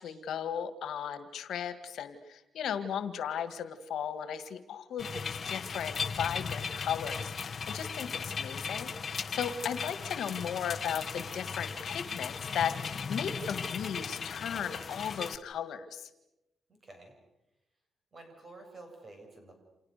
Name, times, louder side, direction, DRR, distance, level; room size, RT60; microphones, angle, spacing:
voice 1, 0.0-16.1, left 8 dB, 80° left, 11 dB, 2.0 m, -36 dB
sound 1, 5.0-15.4, left 6 dB, 35° left, 1.3 m, -37 dB
voice 2, 16.7-17.2 18.1-19.5, right 2 dB, 25° right, 4 dB, 7.2 m, -50 dB
29.5 x 28.0 x 6.8 m, 0.94 s
wide cardioid pair, 170°, 0 cm